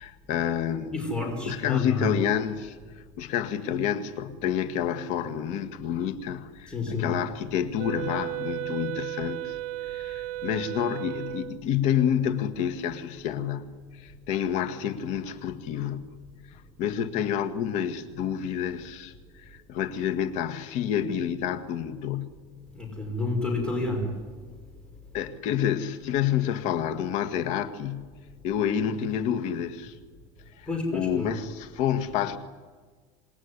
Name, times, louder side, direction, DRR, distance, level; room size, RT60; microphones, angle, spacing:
voice 1, 0.0-1.1 1.5-2.8 3.2-9.6 9.9-16.1 16.8-22.4 25.1-28.1 28.4-30.0 30.6-32.4, left 9 dB, 60° left, 1.9 m, -29 dB
voice 2, 0.9-2.1 6.7-7.1 22.7-24.1 30.7-31.3, left 2 dB, 5° left, 5.5 m, -29 dB
Wind instrument woodwind instrument, 7.8-11.6, right 17 dB, 70° right, 1.3 m, -34 dB
27.0 x 20.0 x 9.9 m
cardioid pair, 145°, 13 cm